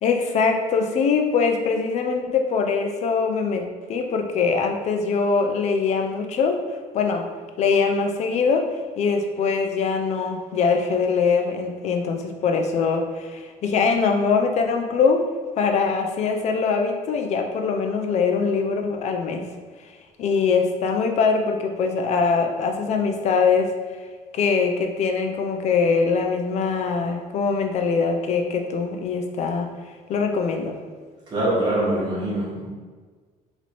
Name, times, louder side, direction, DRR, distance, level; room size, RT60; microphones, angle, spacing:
voice 1, 0.0-7.3 7.6-8.7 9.0-15.3 15.6-19.5 19.8-19.9 20.2-23.7 24.3-29.7 30.1-30.8, left 5 dB, 45° left, 4 dB, 0.4 m, -22 dB
voice 2, 31.3-32.7, right 1 dB, 30° right, -7 dB, 1.1 m, -23 dB
3.0 x 3.0 x 4.0 m, 1.5 s
cardioid pair, 170°, 16 cm